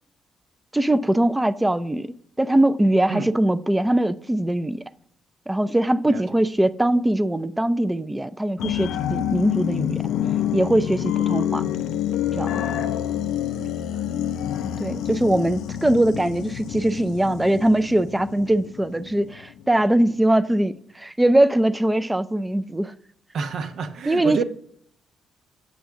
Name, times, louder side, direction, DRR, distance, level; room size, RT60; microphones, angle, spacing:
voice 1, 0.7-4.9 5.5-10.0 10.5-11.6 12.3-12.6 14.8-22.9 24.1-24.4, right 1 dB, 10° right, 0.4 m, -21 dB
sound 1, 8.6-19.6 20.0-20.1, left 10 dB, 85° left, 0.4 m, -27 dB
voice 2, 13.6-14.1 23.3-24.4, right 5 dB, 70° right, 0.9 m, -30 dB
8.1 x 6.3 x 3.6 m
cardioid pair, 90°, 0 cm